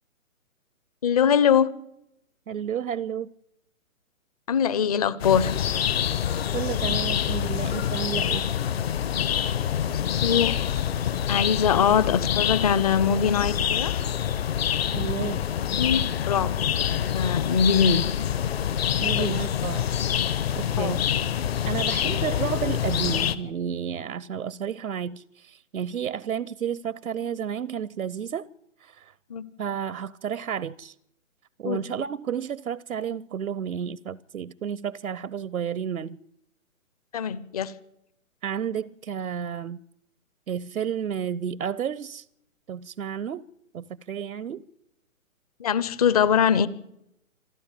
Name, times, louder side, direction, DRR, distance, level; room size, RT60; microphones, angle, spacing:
voice 1, 1.0-1.7 4.5-5.5 9.9-10.6 11.3-13.9 15.2-15.3 15.8-16.5 17.1-18.0 19.2-19.3 20.8-21.0 29.3-29.5 31.6-31.8 37.1-37.7 45.6-46.7, left 7 dB, 25° left, 0.8 m, -22 dB
voice 2, 2.5-3.3 6.5-8.4 14.9-15.5 19.0-19.9 20.6-21.0 21.6-28.5 28.8-29.2 29.6-30.9 31.6-36.2 38.4-39.8 40.5-42.3 42.7-43.4 43.7-44.6, right 8 dB, 80° right, 0.8 m, -31 dB
sound 1, 5.2-23.4, left 9 dB, 45° left, 1.3 m, -26 dB
27.0 x 12.0 x 9.2 m
hypercardioid pair, 150°, 42 cm